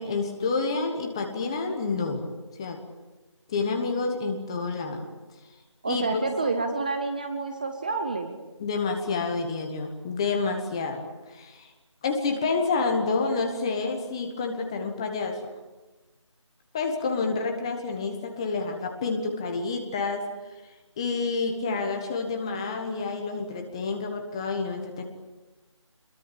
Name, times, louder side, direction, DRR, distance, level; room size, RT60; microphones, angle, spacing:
voice 1, 0.0-2.3 2.6-2.8 3.5-5.1 5.9-6.2 8.6-11.7 12.0-15.4 16.7-20.3 21.0-25.0, left 4 dB, 10° left, 4 dB, 1.2 m, -29 dB
voice 2, 5.8-8.3, right 3 dB, 15° right, 6 dB, 0.8 m, -28 dB
27.0 x 22.0 x 8.7 m, 1.2 s
figure-of-eight pair, 170°, 16 cm